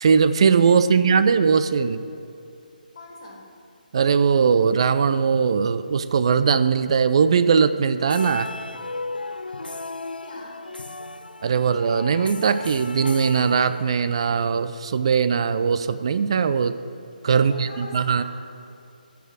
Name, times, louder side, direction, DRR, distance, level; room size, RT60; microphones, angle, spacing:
voice 1, 0.0-2.0 3.9-8.5 11.4-16.8 17.2-18.2, right 6 dB, 35° right, 12 dB, 0.4 m, -20 dB
voice 2, 2.9-3.5 10.2-10.6 17.3-18.2, left 2 dB, 40° left, -3 dB, 2.3 m, -42 dB
sound 1, 8.0-14.3, left 2 dB, 80° left, 0.4 m, -35 dB
12.0 x 6.0 x 6.3 m, 2.6 s
figure-of-eight pair, 145°, 5 cm